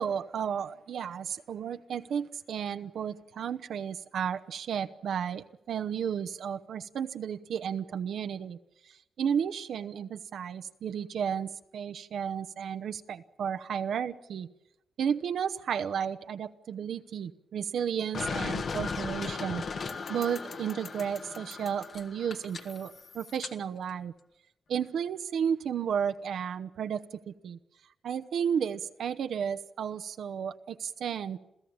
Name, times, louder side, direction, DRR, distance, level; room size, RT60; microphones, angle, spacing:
voice 1, 0.0-8.6 9.2-14.5 15.0-19.6 20.1-24.1 24.7-27.6 28.0-31.4, right 8 dB, 80° right, 9 dB, 0.9 m, -33 dB
sound 1, 18.1-23.5, left 5 dB, 55° left, 1.6 m, -37 dB
28.0 x 16.0 x 8.8 m, 0.91 s
wide cardioid pair, 115°, 0 cm